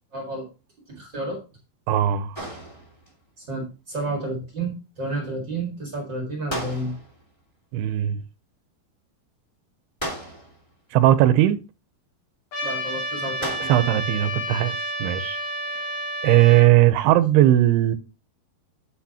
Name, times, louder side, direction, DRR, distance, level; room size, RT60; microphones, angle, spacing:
voice 1, 0.1-0.5 1.0-1.4 3.4-6.9 12.6-13.7, right 2 dB, 40° right, 1.8 m, -31 dB
voice 2, 1.9-2.5 7.7-8.2 10.9-11.6 13.6-15.4 16.2-18.0, right 13 dB, 85° right, 2.6 m, -18 dB
sound 1, 2.3-3.2 6.5-7.3 10.0-10.7 13.4-14.1, right 1 dB, 20° left, 0.7 m, -35 dB
Trumpet, 12.5-16.7, right 1 dB, 45° left, 3.9 m, -30 dB
8.3 x 8.3 x 2.9 m
omnidirectional pair, 4.7 m